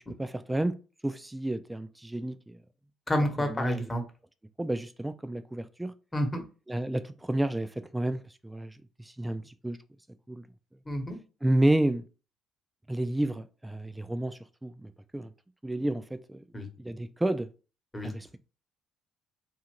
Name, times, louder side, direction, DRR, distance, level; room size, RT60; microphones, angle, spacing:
voice 1, 0.2-0.8 1.0-2.6 3.5-3.9 4.6-5.9 6.7-8.7 9.2-9.8 10.3-10.5 11.4-12.0 12.9-15.3 15.6-16.4 16.8-17.5 18.0-18.4, right 1 dB, 10° right, 0.3 m, -30 dB
voice 2, 3.1-4.0 6.1-6.4 10.9-11.2 16.5-16.7 17.9-18.1, equal, 20° left, 1.0 m, -29 dB
2.7 x 2.4 x 2.9 m
hypercardioid pair, 50°, 0 cm